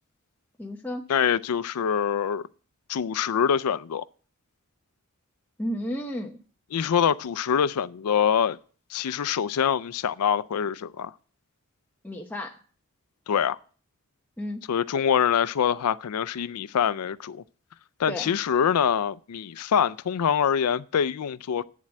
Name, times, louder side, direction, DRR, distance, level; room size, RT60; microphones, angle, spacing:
voice 1, 0.6-1.0 5.6-6.3 12.0-12.6 14.4-14.6 18.1-18.3, equal, 10° left, 0.8 m, -32 dB
voice 2, 1.1-2.5 2.9-4.0 6.7-8.6 8.9-11.1 13.3-13.6 14.7-17.4 18.0-21.6, left 8 dB, 90° left, 0.4 m, -25 dB
8.5 x 7.4 x 8.9 m
head